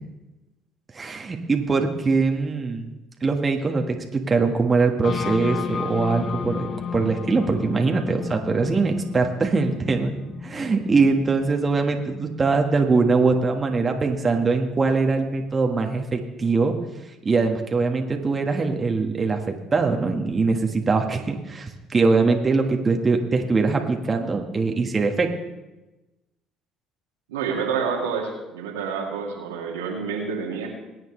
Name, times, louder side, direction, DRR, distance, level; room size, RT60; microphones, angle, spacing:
voice 1, 0.9-2.9 3.2-6.7 6.9-10.1 10.4-16.7 17.2-19.4 19.7-25.3, right 4 dB, 30° right, 3 dB, 1.5 m, -22 dB
sound 1, 5.0-14.7, left 6 dB, 50° left, 0.8 m, -33 dB
voice 2, 27.3-30.7, right 6 dB, 85° right, -1 dB, 2.2 m, -28 dB
21.5 x 9.0 x 3.3 m, 1.0 s
hypercardioid pair, 60°, 0 cm